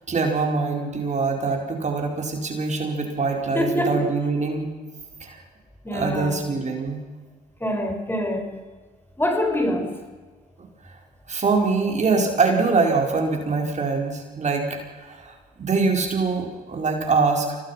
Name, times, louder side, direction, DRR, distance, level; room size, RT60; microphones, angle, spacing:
voice 1, 0.1-4.7 5.2-5.4 5.9-7.0 10.8-11.0 11.3-17.6, right 4 dB, 40° right, 2 dB, 4.7 m, -24 dB
voice 2, 3.5-4.0 5.8-6.5 7.6-8.6 9.2-10.0, left 1 dB, 10° left, 5 dB, 4.9 m, -25 dB
24.5 x 18.0 x 5.8 m, 1.4 s
supercardioid pair, 65°, 18 cm